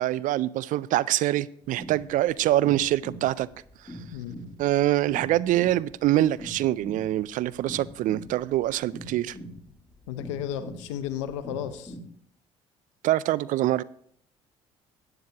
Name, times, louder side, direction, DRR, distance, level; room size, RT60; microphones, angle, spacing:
voice 1, 0.0-3.5 4.6-9.4 13.0-13.8, right 14 dB, 60° right, 0.4 m, -24 dB
sound 1, 1.6-12.0, equal, 20° left, 2.9 m, -43 dB
voice 2, 10.1-12.0, left 10 dB, 90° left, 0.7 m, -33 dB
13.5 x 9.4 x 2.9 m
hypercardioid pair, 60°, 15 cm